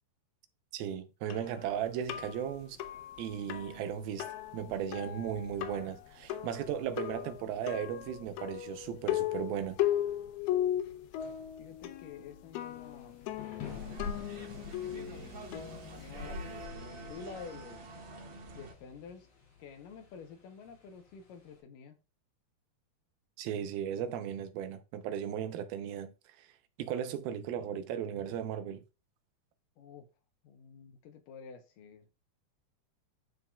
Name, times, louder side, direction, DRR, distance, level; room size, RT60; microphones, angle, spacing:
voice 1, 0.7-2.8 3.2-9.8 23.4-26.5 26.8-28.8, right 9 dB, 80° right, 2.6 m, -36 dB
sound 1, 1.3-16.6, left 12 dB, 90° left, 2.7 m, -37 dB
voice 2, 11.6-13.2 13.6-15.7 16.0-17.8 18.6-19.3 19.6-22.0 29.8-30.1 30.4-32.1, left 6 dB, 70° left, 2.2 m, -50 dB
Thunder / Rain, 12.6-21.6, left 7 dB, 45° left, 3.5 m, -54 dB
sound 2, 13.6-18.7, equal, 45° right, 1.6 m, -44 dB
13.0 x 4.7 x 2.3 m
omnidirectional pair, 4.4 m